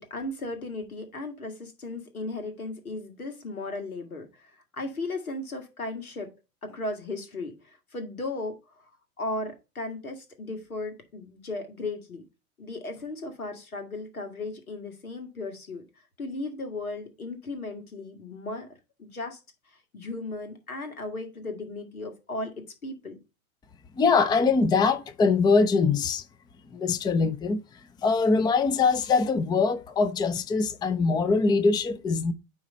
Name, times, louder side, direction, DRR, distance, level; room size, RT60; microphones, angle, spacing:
voice 1, 0.0-6.3 6.6-8.8 9.2-12.2 12.6-18.7 19.0-19.4 19.9-22.5 22.8-23.2, left 2 dB, 85° left, 1.9 m, -36 dB
voice 2, 24.0-26.2 26.7-27.6 28.0-32.3, left 4 dB, 10° left, 0.5 m, -23 dB
9.4 x 3.2 x 4.1 m
hypercardioid pair, 90°, 42 cm